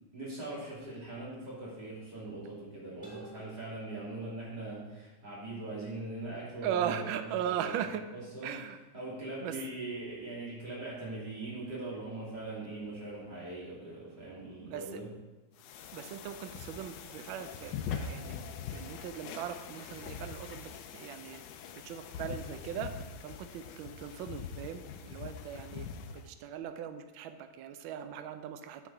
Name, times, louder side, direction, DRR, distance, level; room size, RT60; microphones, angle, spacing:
voice 1, 0.1-7.7 8.1-8.5 8.9-15.1, right 2 dB, 50° right, -8 dB, 3.5 m, -41 dB
sound 1, 1.9-2.0 3.0-5.2, right 1 dB, 5° left, 1.7 m, -56 dB
voice 2, 6.6-8.1 8.4-8.8 9.4-9.6 14.6-15.0 15.9-21.4 21.8-25.9 26.2-28.9, right 9 dB, 75° right, 9 dB, 1.3 m, -39 dB
sound 2, 15.6-26.3, left 7 dB, 75° left, 1.0 m, -43 dB
8.8 x 4.5 x 5.7 m, 1.1 s
omnidirectional pair, 2.4 m